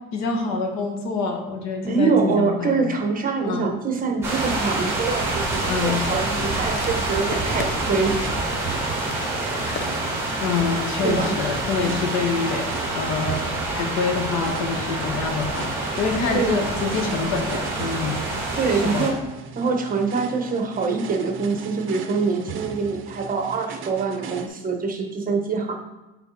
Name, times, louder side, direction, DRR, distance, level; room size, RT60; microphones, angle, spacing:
voice 1, 0.1-2.8 3.4-3.7 5.7-6.1 10.4-12.7 12.9-15.7 16.0-18.2 18.7-19.1, left 5 dB, 65° left, 3 dB, 1.5 m, -26 dB
voice 2, 1.8-8.1 9.4-9.6 11.0-11.3 16.3-16.6 18.5-19.2 19.5-25.7, right 4 dB, 30° right, 3 dB, 1.1 m, -24 dB
sound 1, 4.2-19.1, right 2 dB, 10° right, 2.4 m, -27 dB
sound 2, 5.0-24.5, right 6 dB, 45° right, 0.7 m, -38 dB
sound 3, 6.5-12.5 13.3-13.4, left 6 dB, 40° left, 0.7 m, -40 dB
8.6 x 4.0 x 4.1 m, 1.0 s
cardioid pair, 115°, 29 cm